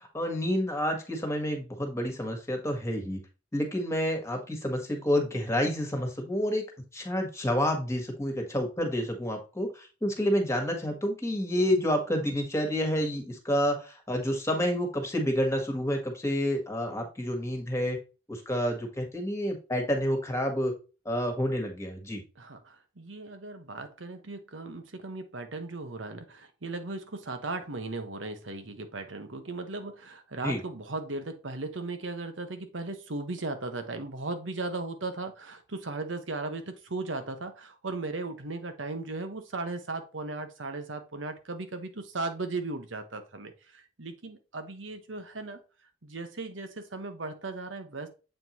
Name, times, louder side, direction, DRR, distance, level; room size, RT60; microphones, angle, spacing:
voice 1, 0.1-3.2 3.5-6.6 6.9-18.0 18.3-20.7 21.0-22.2 30.4-30.6, equal, 15° left, 1.5 m, -29 dB
voice 2, 22.4-45.6 46.0-48.1, right 3 dB, 90° right, 1.2 m, -37 dB
7.6 x 4.5 x 3.0 m
head